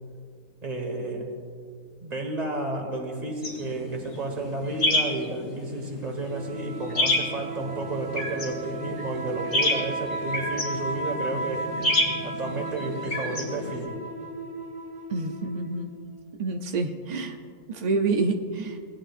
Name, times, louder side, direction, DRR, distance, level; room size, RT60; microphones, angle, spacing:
voice 1, 0.6-1.3 2.0-11.7 12.2-14.0, right 2 dB, 30° right, 2 dB, 1.5 m, -32 dB
sound 1, 3.4-13.9, left 1 dB, 60° left, 2.6 m, -30 dB
sound 2, 6.3-16.0, right 2 dB, 5° right, 0.7 m, -35 dB
voice 2, 15.1-15.9 16.4-17.4 17.7-18.8, right 3 dB, 65° right, 4 dB, 0.4 m, -27 dB
18.0 x 10.5 x 2.5 m, 2.1 s
omnidirectional pair, 1.5 m